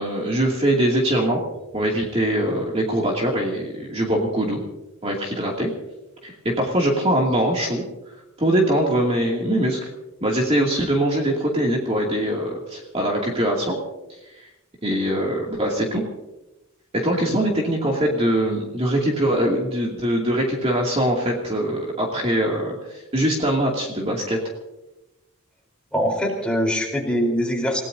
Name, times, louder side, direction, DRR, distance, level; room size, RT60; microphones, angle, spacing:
voice 1, 0.0-1.4 1.7-4.6 5.0-5.7 6.2-7.8 8.4-9.9 10.2-13.7 14.8-16.0 16.9-24.4, right 1 dB, 30° right, -2 dB, 2.5 m, -22 dB
voice 2, 25.9-27.8, equal, 5° left, 0 dB, 4.0 m, -23 dB
28.5 x 17.5 x 2.7 m, 0.98 s
head